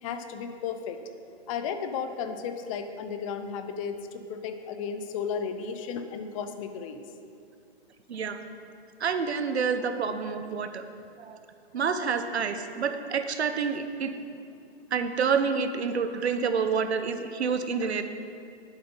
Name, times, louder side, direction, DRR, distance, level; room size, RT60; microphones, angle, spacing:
voice 1, 0.0-1.0 1.5-7.0, left 6 dB, 30° left, 8 dB, 0.7 m, -34 dB
voice 2, 8.1-8.4 9.0-10.8 11.2-11.4 11.7-14.1 14.9-18.0, right 6 dB, 80° right, 8 dB, 1.1 m, -28 dB
11.5 x 8.1 x 5.5 m, 2.4 s
hypercardioid pair, 135°, 32 cm